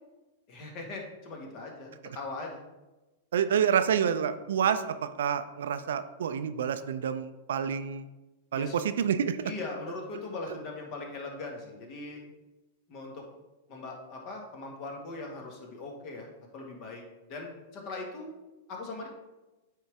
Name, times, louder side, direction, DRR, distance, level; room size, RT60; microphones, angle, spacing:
voice 1, 0.5-2.6 8.5-8.7 9.4-12.2 12.9-13.2 13.7-17.0 17.3-18.3 18.7-19.1, left 3 dB, 45° left, 1 dB, 1.7 m, -40 dB
voice 2, 3.3-8.1 8.5-9.5, right 8 dB, 70° right, 11 dB, 0.4 m, -28 dB
9.0 x 3.8 x 3.5 m, 1.0 s
hypercardioid pair, 105°, 0 cm